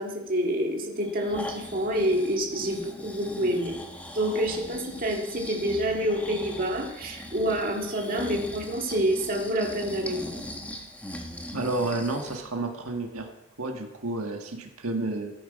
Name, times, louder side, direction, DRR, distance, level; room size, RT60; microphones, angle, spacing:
voice 1, 0.0-3.8 4.1-10.4, equal, 40° right, 1 dB, 2.0 m, -28 dB
Breathing, 1.0-12.4 12.9-13.0, left 1 dB, 5° left, 1.2 m, -40 dB
voice 2, 11.5-13.3 13.6-15.3, right 2 dB, 90° right, 3 dB, 1.5 m, -30 dB
14.0 x 9.5 x 5.3 m, 0.93 s
head